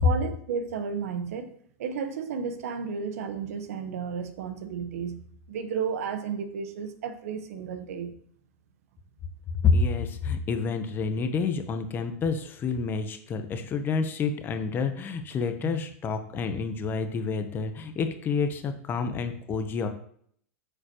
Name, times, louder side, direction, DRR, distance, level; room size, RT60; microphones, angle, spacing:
voice 1, 0.0-8.2 14.8-14.9 15.6-15.8 16.3-16.4 19.1-19.2, right 6 dB, 80° right, 9 dB, 1.2 m, -33 dB
voice 2, 9.6-19.9, left 4 dB, 25° left, 7 dB, 0.9 m, -28 dB
9.4 x 6.8 x 3.0 m, 0.63 s
supercardioid pair, 135°, 8 cm